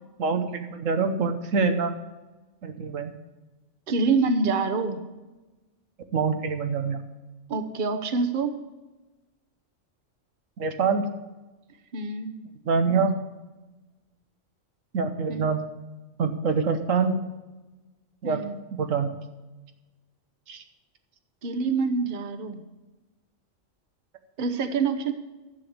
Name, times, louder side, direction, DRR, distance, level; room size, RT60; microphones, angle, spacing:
voice 1, 0.2-1.9 2.6-3.1 6.1-7.0 10.6-11.0 12.7-13.1 14.9-15.6 16.2-17.1 18.2-19.1 20.5-20.6, right 5 dB, 90° right, 7 dB, 1.4 m, -25 dB
voice 2, 3.9-5.0 7.5-8.5 11.9-12.3 15.3-15.4 18.2-18.6 21.4-22.6 24.4-25.1, right 4 dB, 45° right, 9 dB, 1.0 m, -26 dB
11.5 x 7.0 x 7.2 m, 1.1 s
omnidirectional pair, 1.3 m